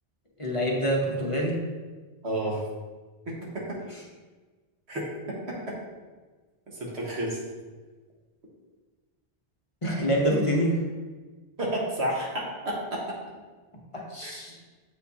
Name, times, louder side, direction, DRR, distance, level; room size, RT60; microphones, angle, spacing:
voice 1, 0.4-1.6 9.8-10.8 13.9-14.6, equal, 30° left, -2 dB, 1.0 m, -26 dB
voice 2, 2.2-2.6 3.3-3.8 4.9-5.0 5.7-5.8 6.7-7.4 11.6-13.0 14.0-14.3, right 1 dB, 85° right, -4 dB, 1.7 m, -31 dB
7.8 x 4.9 x 2.8 m, 1.3 s
omnidirectional pair, 1.1 m